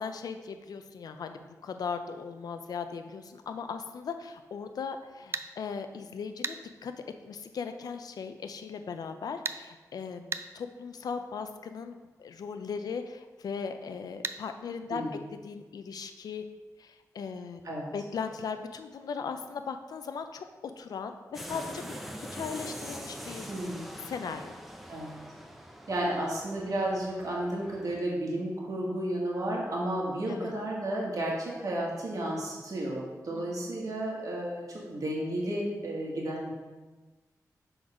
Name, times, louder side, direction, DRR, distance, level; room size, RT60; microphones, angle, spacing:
voice 1, 0.0-6.9 7.2-15.1 15.4-16.5 16.8-23.5 24.0-24.5 30.3-30.5 33.3-33.7, left 6 dB, 85° left, 8 dB, 0.5 m, -38 dB
sound 1, 5.3-5.5 6.4-6.6 9.4-9.6 10.3-10.5 14.2-14.4, right 4 dB, 40° right, 0.3 m, -33 dB
sound 2, 21.3-28.0, equal, ahead, 0.6 m, -43 dB
voice 2, 23.5-23.9 24.9-25.1 25.9-36.5, right 1 dB, 65° right, -4 dB, 1.6 m, -32 dB
6.0 x 3.9 x 4.9 m, 1.3 s
wide cardioid pair, 100°, 6 cm